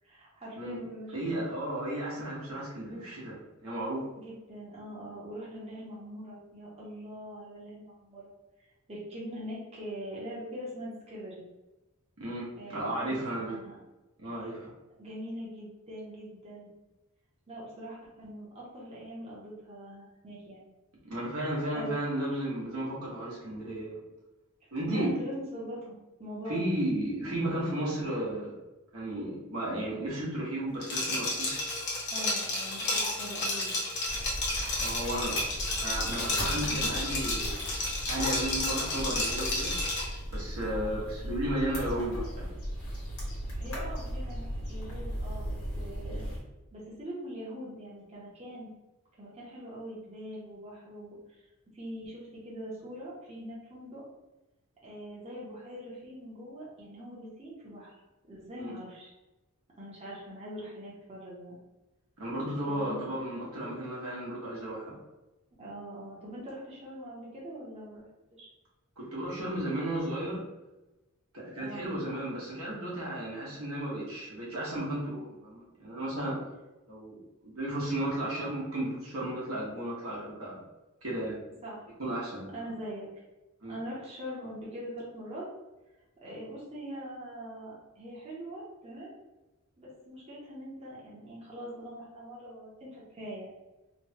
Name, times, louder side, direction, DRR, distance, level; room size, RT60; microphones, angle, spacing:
voice 1, 0.0-1.4 4.2-8.3 8.9-11.4 12.6-13.8 15.0-16.7 17.5-20.7 21.7-21.9 24.9-26.7 32.1-33.7 36.3-37.0 40.6-41.0 43.6-46.3 46.7-48.7 49.2-51.5 51.7-54.0 54.8-57.9 58.3-59.1 59.8-61.6 62.6-63.0 65.6-68.0 68.3-68.5 71.6-71.9 81.6-81.9 82.5-83.1 83.7-85.5 86.2-89.1 89.8-93.5, equal, 30° right, -6 dB, 0.8 m, -42 dB
voice 2, 1.1-4.0 12.2-13.5 14.2-14.7 21.0-24.0 24.7-25.1 26.5-28.5 28.9-31.6 34.8-35.4 35.8-37.6 38.1-39.7 40.3-42.4 58.6-58.7 62.2-65.0 69.0-70.4 71.3-76.4 76.9-80.6 81.0-81.3 82.0-82.5 83.6-83.7, right 1 dB, 85° right, -5 dB, 1.2 m, -34 dB
Liquid, 30.8-40.2, left 2 dB, 55° left, 0.9 m, -31 dB
sound 1, 34.1-46.4, equal, 75° left, 1.3 m, -37 dB
3.2 x 2.1 x 2.8 m, 1.1 s
head